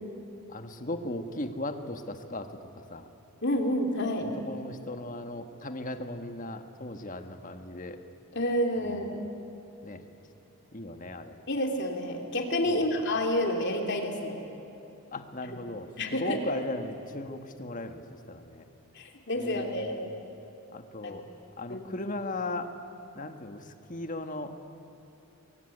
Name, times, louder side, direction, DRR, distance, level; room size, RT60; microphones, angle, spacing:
voice 1, 0.5-2.6 2.9-3.1 4.2-8.0 8.8-9.1 9.8-10.0 10.7-11.4 12.7-12.9 15.1-15.9 16.1-18.0 18.3-18.6 19.4-20.1 20.7-21.2 21.6-22.7 23.1-24.5, left 2 dB, 35° left, 7 dB, 1.5 m, -37 dB
voice 2, 3.4-4.3 8.3-9.2 11.5-14.4 16.0-16.4 18.9-20.1 21.0-21.2 21.7-22.0, left 1 dB, 55° left, 3 dB, 3.0 m, -29 dB
23.0 x 22.5 x 9.9 m, 2.9 s
head